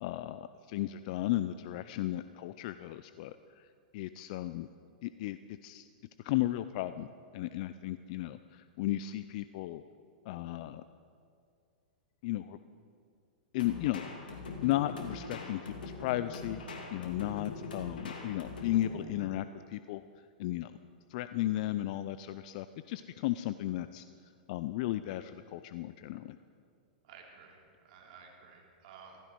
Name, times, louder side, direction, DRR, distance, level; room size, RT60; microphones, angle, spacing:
voice 1, 0.0-3.7 3.9-4.7 5.0-5.9 6.2-7.1 7.3-9.8 10.3-10.8 12.2-12.6 13.5-14.0 14.3-16.6 16.9-20.0 20.4-20.7 21.1-24.0 24.5-26.4, left 15 dB, 55° left, 12 dB, 0.5 m, -35 dB
sound 1, 13.6-19.1, left 3 dB, 80° left, 2.8 m, -42 dB
voice 2, 27.0-29.2, right 6 dB, 55° right, 0 dB, 3.3 m, -54 dB
15.5 x 15.5 x 4.6 m, 2.3 s
hypercardioid pair, 115°, 5 cm